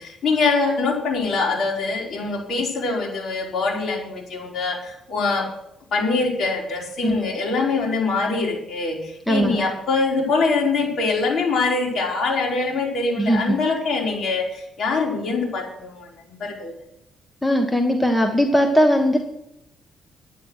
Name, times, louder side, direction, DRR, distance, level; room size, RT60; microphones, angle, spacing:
voice 1, 0.0-5.5 5.9-16.7, left 3 dB, 60° left, -1 dB, 4.5 m, -24 dB
voice 2, 7.0-7.3 9.3-9.7 13.2-13.6 17.4-19.2, equal, 5° left, 4 dB, 1.5 m, -19 dB
11.0 x 9.9 x 6.5 m, 0.80 s
cardioid pair, 90°, 0 cm